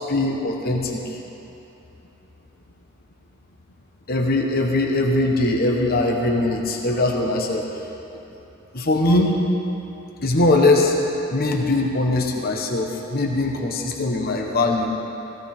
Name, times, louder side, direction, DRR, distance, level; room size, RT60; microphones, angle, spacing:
voice 1, 0.1-1.2 4.1-7.7 8.7-9.4 10.2-10.9 11.3-14.9, left 2 dB, 50° left, 1 dB, 1.2 m, -21 dB
15.5 x 15.5 x 3.6 m, 3.0 s
head